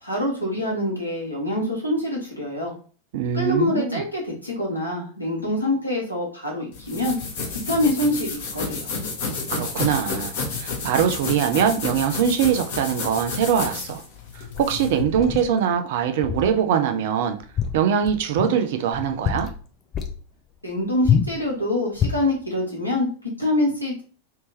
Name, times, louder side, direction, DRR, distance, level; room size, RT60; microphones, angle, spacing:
voice 1, 0.0-2.7 3.3-7.2 7.5-8.9 20.6-24.0, left 1 dB, 90° left, 1.4 m, -25 dB
voice 2, 3.1-4.0 9.5-14.0 14.6-17.4 17.7-19.5, right 8 dB, 55° right, 0.5 m, -22 dB
sound 1, 6.7-15.0, left 4 dB, 55° left, 1.0 m, -30 dB
sound 2, 14.5-15.5 16.2-16.6 16.9-17.0 17.4-18.6 18.9-19.6 19.9-20.2 21.0-21.4 22.0-22.3, left 8 dB, 25° left, 0.6 m, -26 dB
3.3 x 2.8 x 3.1 m
figure-of-eight pair, 90°, 0 cm